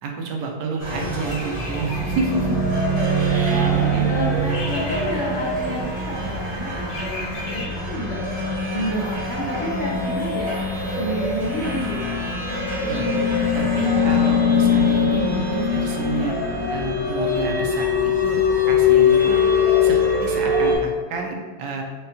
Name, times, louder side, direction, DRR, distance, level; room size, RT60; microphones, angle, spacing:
voice 1, 0.0-2.6 3.3-4.0 12.9-13.1 13.5-16.3 16.7-19.4 19.8-21.8, right 3 dB, 75° right, 1 dB, 1.2 m, -29 dB
sound 1, 0.8-20.8, left 3 dB, 25° right, 0.7 m, -22 dB
sound 2, 1.1-7.7, left 2 dB, 65° left, 1.3 m, -39 dB
voice 2, 2.9-3.2 3.5-8.2 8.7-10.6 11.0-12.4, equal, 85° left, -5 dB, 0.6 m, -30 dB
5.3 x 2.2 x 2.7 m, 1.5 s
omnidirectional pair, 2.0 m